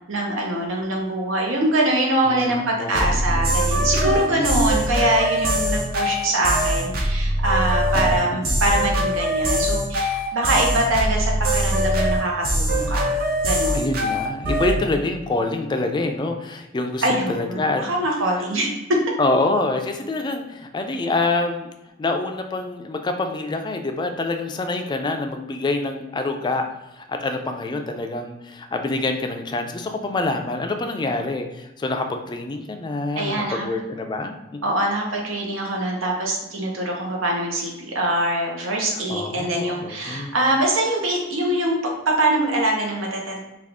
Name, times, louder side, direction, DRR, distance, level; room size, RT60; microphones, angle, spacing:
voice 1, 0.1-14.0 17.0-18.7 33.1-33.6 34.6-43.4, right 1 dB, 90° right, 0 dB, 0.8 m, -23 dB
voice 2, 2.3-3.6 4.0-4.6 7.9-8.4 13.7-17.8 19.2-21.7 22.0-26.7 27.0-34.6 38.9-40.3, left 2 dB, 25° left, 5 dB, 0.3 m, -26 dB
sound 1, 2.9-14.8, equal, 50° right, 0.6 m, -22 dB
3.5 x 2.4 x 3.5 m, 0.95 s
head